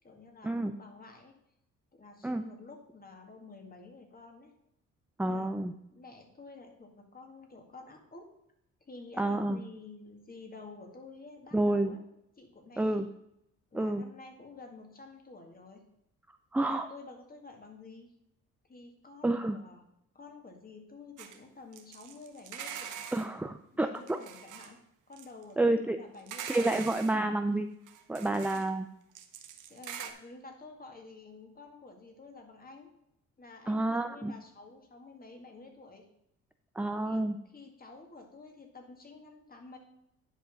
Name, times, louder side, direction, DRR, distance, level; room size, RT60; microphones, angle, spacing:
voice 1, 0.0-1.4 1.9-4.5 5.2-8.3 8.8-12.0 12.4-13.0 13.7-15.9 16.6-18.1 18.7-19.8 20.1-23.1 23.7-24.8 25.1-26.8 28.4-28.6 29.7-32.9 33.4-36.1 37.0-37.2 37.5-39.8, left 3 dB, 30° left, 4 dB, 2.1 m, -50 dB
voice 2, 5.2-5.7 9.2-9.6 11.5-12.0 12.8-13.1 13.7-14.0 16.5-16.9 19.2-19.6 23.1-24.2 25.6-26.0 26.5-27.7 28.1-28.8 33.7-34.3 36.8-37.4, right 2 dB, 5° right, 7 dB, 0.5 m, -29 dB
sound 1, 21.2-21.4 21.7-23.3 24.0-24.7 25.1-25.4 26.2-27.2 27.9-28.7 29.2-30.1, right 9 dB, 80° right, 1.0 m, -43 dB
10.0 x 5.2 x 5.3 m, 0.78 s
cardioid pair, 90°, 30 cm